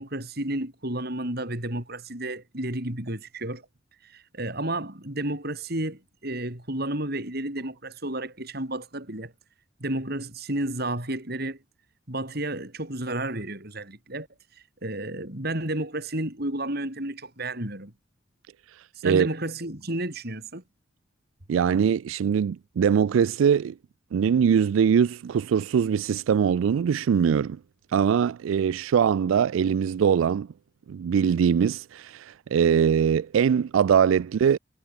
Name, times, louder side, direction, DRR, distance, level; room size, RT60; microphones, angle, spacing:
voice 1, 0.0-3.6 4.0-9.3 9.8-11.6 12.1-14.3 14.8-17.9 19.0-20.6, right 1 dB, 50° right, 5.3 m, -31 dB
voice 2, 18.7-19.3 21.5-23.7 24.1-27.6 27.9-30.5 30.9-34.6, right 7 dB, 85° right, 0.3 m, -22 dB
head